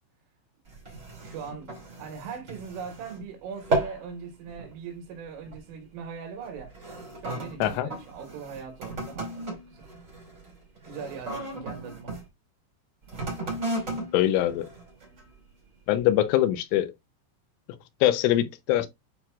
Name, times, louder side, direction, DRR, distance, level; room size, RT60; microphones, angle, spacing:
sound 1, 0.7-3.3 3.5-4.1 4.5-4.8 5.5-5.7 6.4-12.2 13.0-15.4 16.0-16.1, right 2 dB, 25° right, 1.7 m, -35 dB
voice 1, 1.2-6.7 7.2-9.9 10.8-12.1, right 6 dB, 90° right, 4.0 m, -40 dB
voice 2, 14.1-14.7 15.9-16.9 18.0-18.9, left 13 dB, 90° left, 3.2 m, -23 dB
9.0 x 4.4 x 2.4 m
omnidirectional pair, 5.5 m